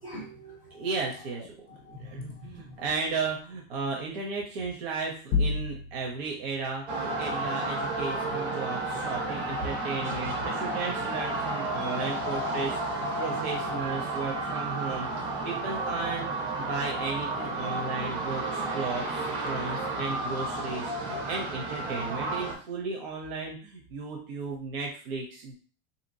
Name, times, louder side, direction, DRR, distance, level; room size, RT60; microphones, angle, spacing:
voice 1, 0.0-0.9 1.7-2.8, left 1 dB, 15° right, -3 dB, 0.5 m, -44 dB
voice 2, 0.7-1.7 2.0-16.3 16.6-25.5, right 4 dB, 65° right, -1 dB, 0.9 m, -35 dB
sound 1, 5.3-6.3, left 4 dB, 35° left, 0.5 m, -27 dB
sound 2, 6.9-22.5, right 2 dB, 85° right, 1.2 m, -32 dB
3.4 x 2.9 x 2.6 m, 0.40 s
supercardioid pair, 175°, 33 cm